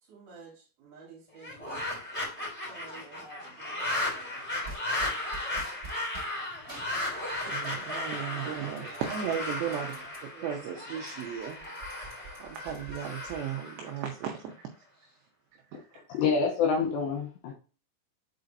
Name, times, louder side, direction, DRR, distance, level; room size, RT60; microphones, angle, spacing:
voice 1, 0.0-1.8 2.6-4.4 8.3-9.0 9.7-11.0, right 4 dB, 55° right, 3.3 m, -52 dB
sound 1, 1.3-14.5, left 1 dB, 5° left, 1.6 m, -35 dB
sound 2, 4.6-6.3 6.7-7.8 8.1-10.2 10.6-10.7 10.9-13.4, right 3 dB, 25° right, 3.3 m, -47 dB
voice 2, 7.5-11.6 12.4-14.7 14.9-15.2 15.5-16.1, right 9 dB, 80° right, 2.5 m, -36 dB
voice 3, 16.1-17.5, left 5 dB, 80° left, 2.6 m, -27 dB
7.9 x 4.8 x 2.6 m
omnidirectional pair, 5.8 m